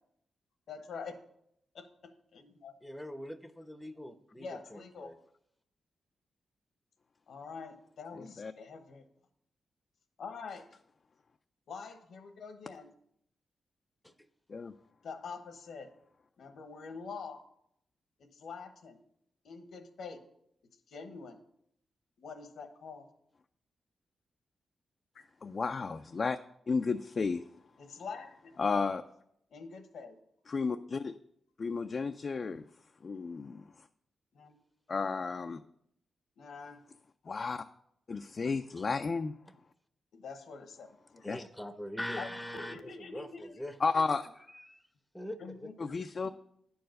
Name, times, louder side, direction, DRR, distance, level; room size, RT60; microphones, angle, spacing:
voice 1, 0.7-1.1 1.7-2.7 4.4-5.1 7.3-9.0 10.2-10.7 11.7-12.9 15.0-15.9 16.4-17.4 18.2-19.0 19.4-20.2 20.9-21.4 22.2-23.1 27.8-28.7 29.5-30.2 34.3-34.6 36.4-36.8 40.1-40.9 41.1-41.3 42.2-43.6 45.4-45.7 46.2-46.3, left 5 dB, 80° left, 7 dB, 1.0 m, -45 dB
voice 2, 2.8-5.2 14.0-14.1 38.8-38.9 41.2-43.8 44.5-44.8 45.1-45.7, equal, 5° left, 10 dB, 0.6 m, -42 dB
voice 3, 8.1-8.5 14.5-14.7 25.4-26.4 26.7-27.4 28.6-29.0 30.5-31.1 31.6-32.6 33.0-33.6 34.9-35.6 37.3-37.6 38.1-39.4 41.2-41.4 43.8-44.3 45.8-46.3, left 4 dB, 45° left, 7 dB, 0.3 m, -32 dB
10.0 x 4.7 x 6.4 m, 0.74 s
cardioid pair, 90°, 0 cm